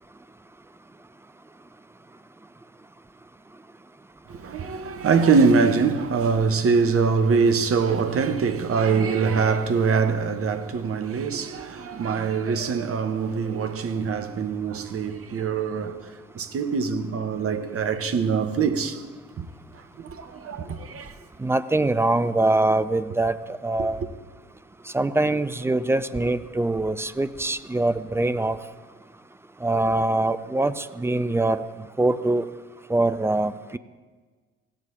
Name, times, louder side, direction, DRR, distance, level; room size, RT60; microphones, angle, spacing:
voice 1, 4.3-16.0 16.3-19.0 19.4-19.5 20.0-21.1, right 5 dB, 35° right, 1.1 m, -23 dB
voice 2, 21.4-23.4 23.6-24.0 24.9-28.6 29.6-31.6 32.0-32.5 32.9-33.8, right 2 dB, 5° right, 0.3 m, -23 dB
17.0 x 6.8 x 3.7 m
figure-of-eight pair, 50°, 39 cm